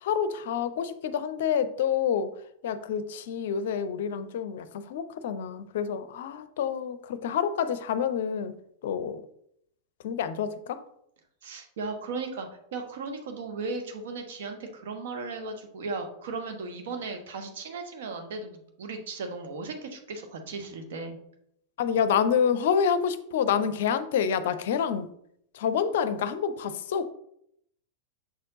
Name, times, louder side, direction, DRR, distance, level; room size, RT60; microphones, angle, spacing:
voice 1, 0.0-2.3 2.6-8.5 8.8-9.2 10.0-10.8 21.8-25.1 25.5-27.1, left 7 dB, 55° left, 13 dB, 0.5 m, -28 dB
voice 2, 11.4-21.2, right 3 dB, 55° right, 5 dB, 1.1 m, -36 dB
6.8 x 4.4 x 3.7 m, 0.73 s
figure-of-eight pair, 90°, 0 cm